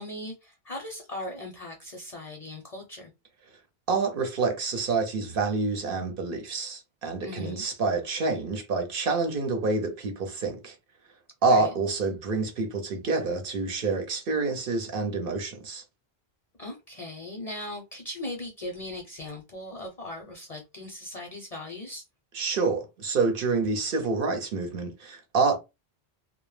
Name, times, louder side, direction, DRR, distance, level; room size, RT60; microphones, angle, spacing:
voice 1, 0.0-3.1 7.2-7.6 11.5-11.7 16.6-22.0, left 1 dB, 45° left, 0.6 m, -38 dB
voice 2, 3.9-10.7 11.4-15.8 22.3-25.6, right 4 dB, 65° right, 0.8 m, -27 dB
2.1 x 2.0 x 3.1 m
omnidirectional pair, 1.0 m